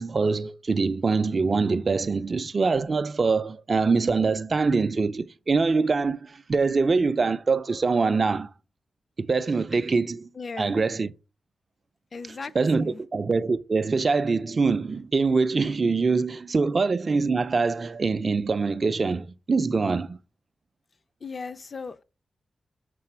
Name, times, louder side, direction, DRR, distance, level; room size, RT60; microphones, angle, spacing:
voice 1, 0.0-8.5 9.2-10.3 10.6-11.1 12.5-20.2, right 4 dB, 35° right, 0.4 m, -24 dB
voice 2, 10.3-10.8 12.1-13.0 21.2-22.0, left 4 dB, 35° left, 0.4 m, -37 dB
6.7 x 3.9 x 4.3 m
wide cardioid pair, 170°, 0 cm